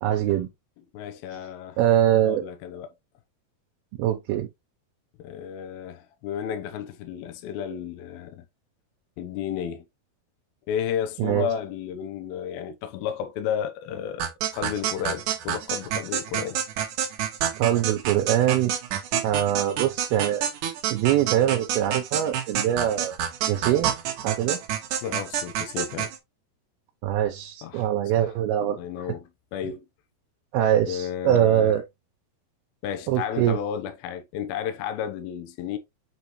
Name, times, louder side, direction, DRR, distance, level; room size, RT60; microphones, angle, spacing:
voice 1, 0.0-0.5 1.8-2.4 4.0-4.5 11.2-11.5 17.6-18.7 19.2-20.4 20.9-23.2 23.5-23.9 24.2-24.6 27.0-28.8 30.5-31.8 33.1-33.6, right 11 dB, 85° right, 2.7 m, -23 dB
voice 2, 0.9-1.8 2.1-2.9 5.2-8.5 9.2-9.9 10.7-16.6 25.0-26.1 27.6-27.9 28.1-28.3 28.6-29.9 30.8-31.8 32.8-35.8, left 9 dB, 80° left, 2.7 m, -32 dB
sound 1, 14.2-26.2, right 9 dB, 65° right, 2.3 m, -28 dB
8.2 x 3.9 x 3.1 m
omnidirectional pair, 4.3 m